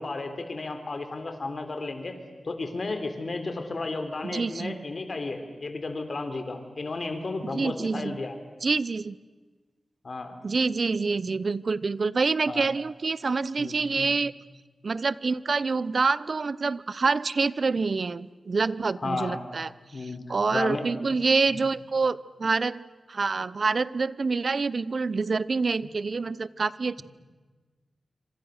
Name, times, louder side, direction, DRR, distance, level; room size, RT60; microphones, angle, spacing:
voice 1, 0.0-2.2 2.4-8.4 10.0-10.5 12.5-12.7 13.6-14.1 19.0-19.4 19.9-20.9 21.5-21.6 25.8-25.9, left 3 dB, 55° left, 7 dB, 3.5 m, -33 dB
voice 2, 4.2-4.8 7.5-8.2 8.6-9.2 10.4-14.3 14.8-19.7 20.3-22.8 23.1-27.0, right 4 dB, 60° right, 19 dB, 0.7 m, -26 dB
27.5 x 25.5 x 6.6 m, 1.4 s
cardioid pair, 60°, 0 cm